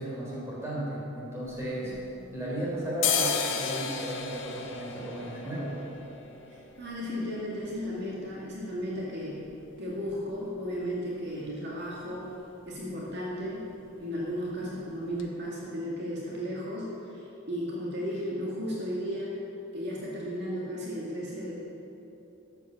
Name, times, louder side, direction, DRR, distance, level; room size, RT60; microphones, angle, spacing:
voice 1, 0.0-1.9 2.3-5.8, right 1 dB, 15° right, -6 dB, 3.5 m, -35 dB
sound 1, 1.4-2.5 2.8-10.6 10.9-11.0 11.2-11.8 12.1-12.3 12.6-12.8 13.1-13.8 14.2-14.3 14.8-14.9 15.2-15.3, left 6 dB, 60° left, 1.1 m, -35 dB
voice 2, 1.8-2.3 6.5-9.4 9.8-12.3 12.7-13.6 14.0-19.3 19.7-21.5, equal, 55° right, -5 dB, 2.0 m, -35 dB
12.5 x 8.2 x 7.0 m, 3.0 s
head